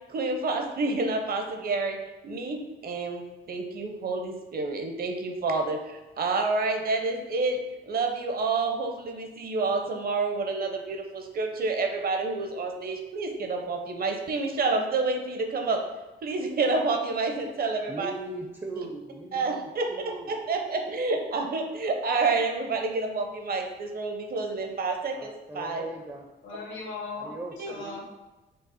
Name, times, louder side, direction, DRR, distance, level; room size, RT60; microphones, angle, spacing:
voice 1, 0.1-2.0 2.2-7.6 7.9-15.8 16.2-18.1 18.8-18.9 19.3-25.8 27.6-27.7, right 3 dB, 50° right, 3 dB, 0.8 m, -29 dB
voice 2, 17.9-20.4 25.1-26.3 27.1-28.0, right 2 dB, 15° right, 2 dB, 0.5 m, -39 dB
voice 3, 26.4-28.0, left 3 dB, 75° left, -2 dB, 1.3 m, -38 dB
5.4 x 2.1 x 4.1 m, 1.1 s
cardioid pair, 90°, 20 cm